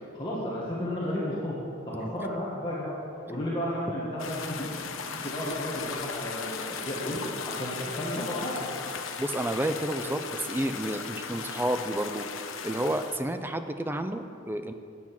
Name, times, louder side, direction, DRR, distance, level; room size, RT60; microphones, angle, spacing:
voice 1, 0.1-1.6 1.9-3.0 3.3-7.2 7.5-8.7, equal, 25° left, -7 dB, 1.5 m, -33 dB
sound 1, 4.2-13.2, left 6 dB, 85° left, 0.7 m, -37 dB
voice 2, 9.2-12.2 12.6-14.7, right 1 dB, 10° right, 8 dB, 0.4 m, -30 dB
8.9 x 8.4 x 5.8 m, 2.6 s
head